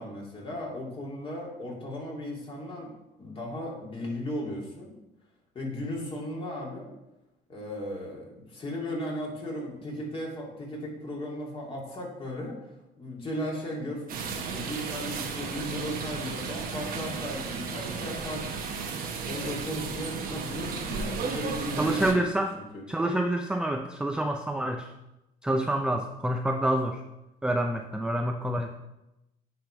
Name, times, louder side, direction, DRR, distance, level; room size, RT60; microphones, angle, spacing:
voice 1, 0.0-2.9 3.2-4.9 5.5-7.0 7.5-12.6 13.0-18.7 19.2-22.3 22.5-22.9, equal, 30° left, -3 dB, 2.4 m, -36 dB
sound 1, 14.1-22.1, right 5 dB, 60° right, 1.1 m, -34 dB
voice 2, 21.8-22.6 22.9-24.9 25.4-27.0 27.4-28.7, right 1 dB, 5° right, 4 dB, 0.4 m, -27 dB
9.4 x 3.5 x 4.4 m, 0.92 s
cardioid pair, 110°, 17 cm